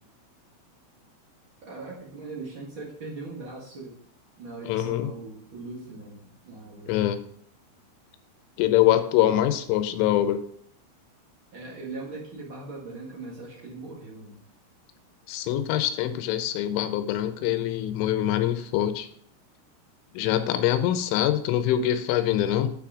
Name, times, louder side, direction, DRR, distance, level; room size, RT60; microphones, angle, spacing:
voice 1, 1.6-4.0 4.4-7.0 11.5-14.4 20.4-20.6, right 3 dB, 80° right, -4 dB, 1.1 m, -40 dB
voice 2, 4.7-5.1 6.9-7.2 8.6-10.4 15.3-19.1 20.1-22.7, left 12 dB, 85° left, 9 dB, 3.2 m, -24 dB
8.4 x 6.0 x 4.9 m, 0.62 s
omnidirectional pair, 5.7 m